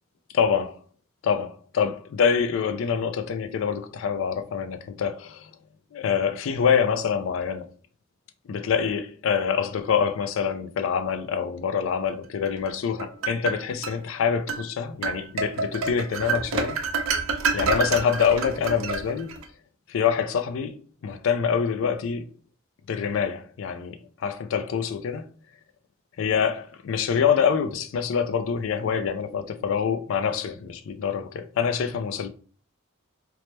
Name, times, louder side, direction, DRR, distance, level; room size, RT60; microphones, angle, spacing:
voice 1, 0.3-0.7 1.2-5.5 5.9-7.7 8.5-16.8 17.5-19.3 19.9-20.8 21.0-22.3 22.9-25.3 26.2-32.3, left 7 dB, 70° left, 0.3 m, -25 dB
sound 1, 12.7-14.0 14.5-14.7 15.0-19.5, right 4 dB, 80° right, 0.5 m, -28 dB
2.9 x 2.0 x 3.1 m
head